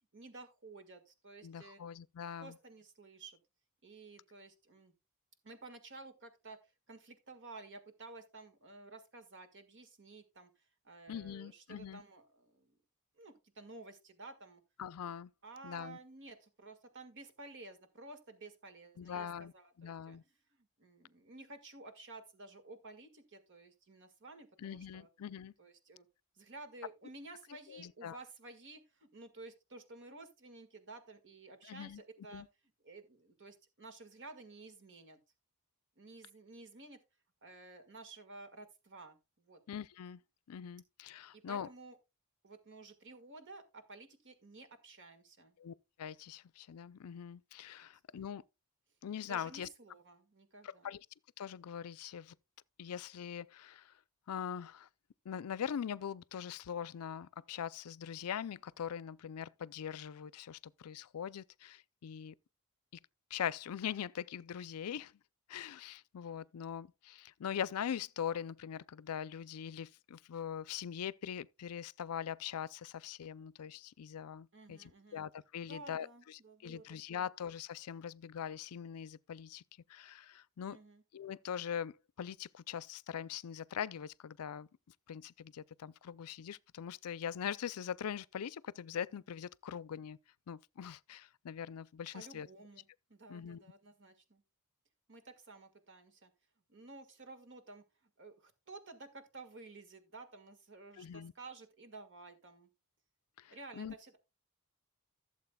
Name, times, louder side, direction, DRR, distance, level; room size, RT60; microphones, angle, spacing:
voice 1, 0.1-1.8 2.4-3.4 3.8-4.9 5.4-6.6 6.9-12.8 13.2-14.6 15.4-19.3 19.5-20.2 20.6-25.1 25.6-26.1 26.3-32.4 32.8-35.2 36.0-37.0 37.4-39.6 41.3-42.0 42.4-45.5 48.1-48.2 49.3-50.9 74.5-75.2 75.7-76.8 77.1-77.2 80.7-81.0 92.1-94.4 95.1-96.3 96.7-97.8 98.2-102.7 103.5-104.2, right 3 dB, 55° right, 1.8 m, -53 dB
voice 2, 1.4-2.6 11.1-12.0 14.8-15.3 15.6-16.0 19.0-19.5 19.8-20.2 24.6-25.5 27.7-28.2 31.6-32.0 32.3-32.5 39.7-40.2 40.5-41.7 45.6-48.4 49.0-49.7 50.6-51.1 51.4-52.4 52.8-54.0 54.3-54.9 55.2-62.3 63.3-65.2 65.5-79.6 79.9-80.8 81.1-84.7 85.1-90.2 90.5-92.5 93.3-93.6 100.9-101.3 103.4-104.0, left 8 dB, 80° left, 0.4 m, -42 dB
16.0 x 7.4 x 2.2 m
head